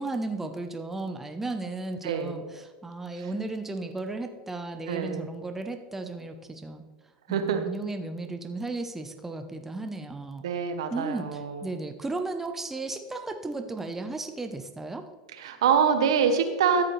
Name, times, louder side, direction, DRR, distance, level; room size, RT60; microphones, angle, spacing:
voice 1, 0.0-6.8 7.3-10.4 10.9-15.1, right 2 dB, 10° right, 6 dB, 0.8 m, -35 dB
voice 2, 2.0-2.4 3.2-3.3 4.9-5.3 7.3-7.7 10.4-11.6 15.3-16.8, right 7 dB, 80° right, 7 dB, 1.0 m, -25 dB
13.0 x 7.5 x 3.3 m, 1.3 s
hypercardioid pair, 100°, 3 cm